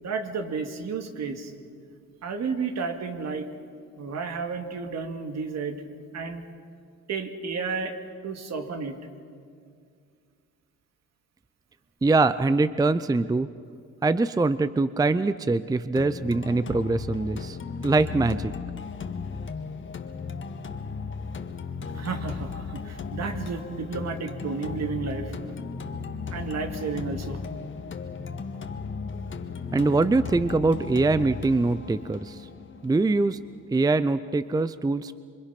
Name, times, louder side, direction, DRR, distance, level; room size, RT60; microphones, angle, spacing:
voice 1, 0.0-1.5 2.2-3.5 4.0-5.8 6.1-6.4 7.1-8.0 8.2-9.0 21.9-25.3 26.3-27.4, right 4 dB, 60° right, 5 dB, 2.3 m, -32 dB
voice 2, 12.0-13.5 14.0-17.6 17.8-18.5 29.7-32.5 32.8-33.4 33.7-35.1, right 3 dB, 15° right, 14 dB, 0.5 m, -23 dB
sound 1, 16.0-33.9, left 5 dB, 40° left, 1.6 m, -36 dB
27.0 x 24.0 x 5.9 m, 2.3 s
cardioid pair, 90°, 30 cm